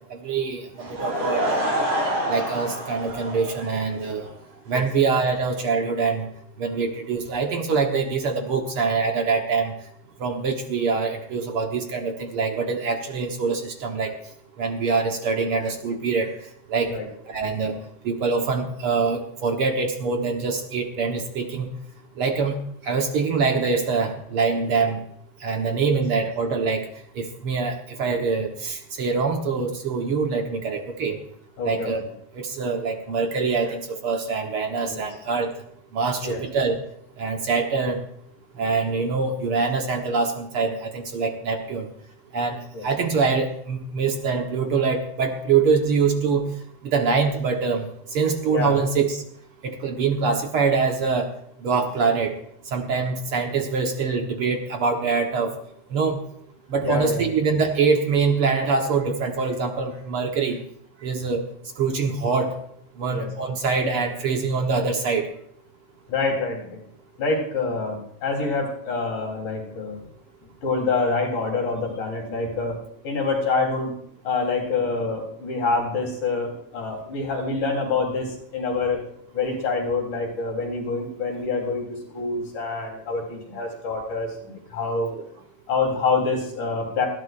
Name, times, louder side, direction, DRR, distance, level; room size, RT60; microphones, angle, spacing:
voice 1, 0.1-1.6 2.3-4.3 4.7-6.3 6.6-9.7 10.2-14.2 14.6-16.3 16.7-16.9 17.3-17.8 18.1-21.7 22.2-22.6 22.8-25.0 25.4-26.9 27.2-31.2 31.6-32.0 32.4-35.5 35.9-36.8 37.2-38.0 38.6-41.9 42.3-46.4 46.8-49.2 49.6-51.3 51.6-52.3 52.7-55.5 55.9-56.2 56.7-60.6 61.0-61.4 61.8-62.5 63.0-65.3 85.1-85.2, right 5 dB, 55° right, 3 dB, 1.8 m, -24 dB
Laughter / Crowd, 0.7-4.3, equal, 75° right, 7.1 m, -27 dB
voice 2, 31.6-31.9 34.9-35.0 36.2-36.4 42.7-42.8 48.5-48.8 56.8-57.3 63.1-63.3 66.1-66.8 67.2-70.0 70.6-72.8 73.0-73.9 74.2-79.0 79.3-85.1 85.7-87.1, left 3 dB, 80° left, -1 dB, 5.1 m, -26 dB
20.0 x 15.5 x 2.5 m, 0.67 s
omnidirectional pair, 3.4 m